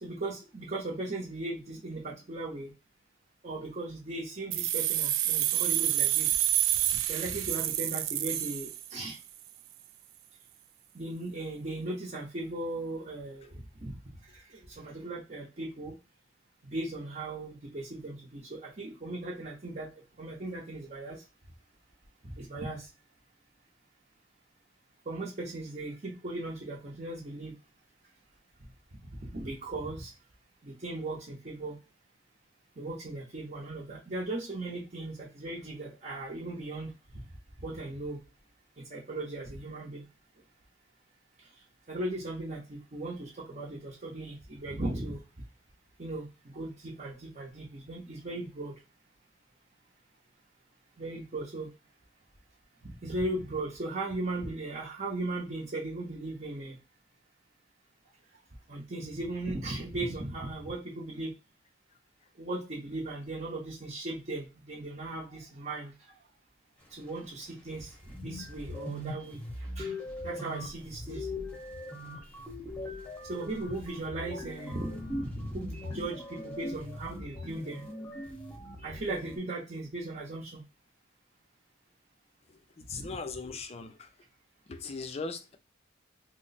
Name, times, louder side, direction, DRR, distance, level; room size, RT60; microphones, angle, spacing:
voice 1, 0.0-2.7 3.4-6.3 7.1-9.2 10.9-13.9 14.3-15.9 16.6-19.9 20.2-21.2 22.2-22.9 25.1-27.5 29.2-30.1 30.6-31.8 32.8-36.9 37.6-38.2 38.9-40.0 41.9-45.2 46.0-48.7 51.0-51.7 52.8-56.8 58.7-61.3 62.4-65.9 66.9-71.6 73.3-77.8 78.8-80.6 83.0-83.1, right 2 dB, 40° right, 0.8 m, -37 dB
sound 1, 4.5-9.3, right 13 dB, 75° right, 0.3 m, -28 dB
sound 2, 67.8-67.9 68.1-79.4, left 1 dB, 5° left, 0.8 m, -40 dB
voice 2, 82.5-84.1 84.7-85.6, left 4 dB, 30° left, 0.4 m, -39 dB
3.0 x 2.0 x 4.0 m
head